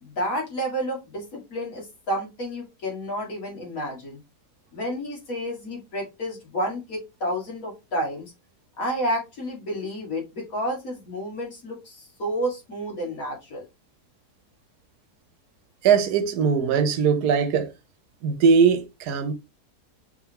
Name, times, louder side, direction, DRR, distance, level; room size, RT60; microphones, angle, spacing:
voice 1, 0.0-4.2 4.7-8.3 8.8-13.6, equal, 60° left, 2.5 m, -30 dB
voice 2, 15.8-17.7 18.2-19.3, right 6 dB, 90° right, 1.3 m, -20 dB
4.5 x 3.7 x 2.9 m
omnidirectional pair, 1.7 m